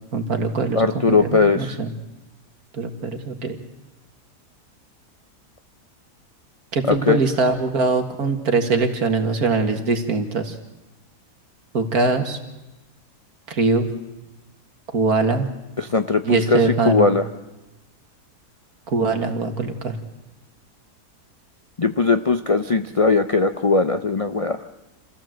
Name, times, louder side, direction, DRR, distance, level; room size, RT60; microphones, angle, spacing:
voice 1, 0.1-0.8 1.1-1.9 2.7-3.6 6.7-10.5 11.7-12.4 13.5-13.9 14.9-15.5 16.2-17.1 18.9-20.0, right 3 dB, 65° right, 6 dB, 2.3 m, -22 dB
voice 2, 0.7-1.8 6.8-7.2 15.8-17.3 21.8-24.6, left 3 dB, 45° left, 8 dB, 0.4 m, -19 dB
27.0 x 15.5 x 7.8 m, 1.0 s
omnidirectional pair, 1.7 m